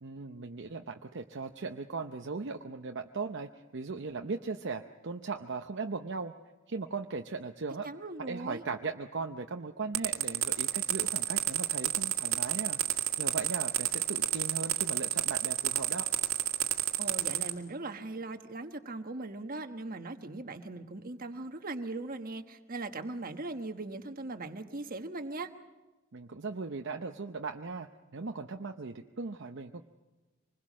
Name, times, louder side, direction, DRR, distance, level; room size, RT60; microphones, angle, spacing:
voice 1, 0.0-6.3 6.7-7.9 8.3-12.8 13.2-16.1 26.1-29.8, right 4 dB, 60° right, 4 dB, 0.7 m, -38 dB
voice 2, 7.8-8.6 17.0-25.5, right 2 dB, 45° right, 7 dB, 1.3 m, -39 dB
sound 1, 9.9-17.5, right 12 dB, 90° right, 1.9 m, -29 dB
25.5 x 21.0 x 6.2 m, 1.2 s
head